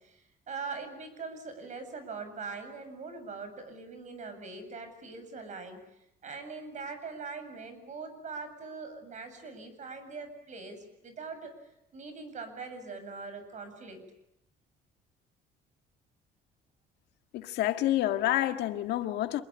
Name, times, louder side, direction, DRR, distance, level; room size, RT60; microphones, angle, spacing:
voice 1, 0.0-14.1, right 4 dB, 45° right, 7.6 m, -42 dB
voice 2, 17.3-19.4, left 14 dB, 80° left, 1.8 m, -28 dB
27.5 x 21.0 x 10.0 m
cardioid pair, 110°, 17 cm